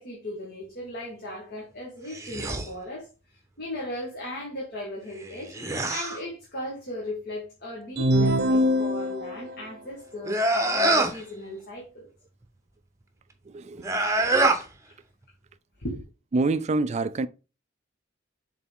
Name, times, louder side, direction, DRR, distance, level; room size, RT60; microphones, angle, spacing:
voice 1, 0.0-3.1 3.6-5.5 5.9-12.1 15.8-16.0, left 1 dB, 55° left, 2.0 m, -37 dB
sound 1, 2.1-2.7 5.2-6.2 10.2-11.2 13.8-14.6, right 2 dB, 15° right, 0.8 m, -25 dB
sound 2, 8.0-9.5, equal, 60° right, 0.7 m, -23 dB
voice 2, 13.5-14.4 16.3-17.3, right 3 dB, 35° right, 0.4 m, -27 dB
6.8 x 4.1 x 3.6 m
head